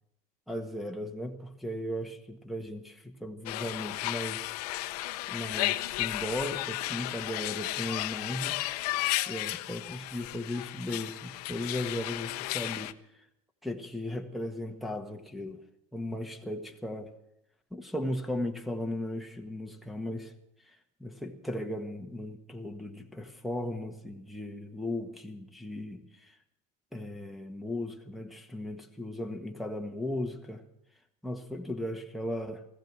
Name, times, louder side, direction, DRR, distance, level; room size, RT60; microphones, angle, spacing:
voice 1, 0.5-4.5 5.3-8.7 9.3-13.3 13.6-15.6 15.9-17.1 17.7-20.3 20.6-26.4 26.9-30.6 31.2-32.7, left 1 dB, ahead, 2 dB, 1.6 m, -37 dB
sound 1, 3.5-12.9, left 18 dB, 85° left, 0.6 m, -34 dB
15.5 x 14.5 x 6.2 m, 0.80 s
supercardioid pair, 95°, 19 cm